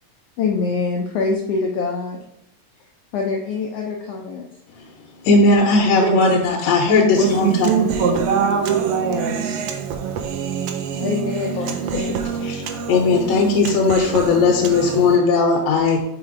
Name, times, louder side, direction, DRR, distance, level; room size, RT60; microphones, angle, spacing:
voice 1, 0.4-2.2 3.1-4.4 10.9-12.2, left 4 dB, 90° left, 1 dB, 1.3 m, -24 dB
voice 2, 5.2-7.7 11.9-12.1 12.4-16.0, left 3 dB, 70° left, 0 dB, 1.7 m, -17 dB
voice 3, 6.0-6.4 7.2-9.6, right 6 dB, 75° right, 3 dB, 1.7 m, -21 dB
Human voice, 7.2-15.2, right 6 dB, 90° right, 1.3 m, -27 dB
5.1 x 4.2 x 4.8 m, 0.84 s
omnidirectional pair, 3.5 m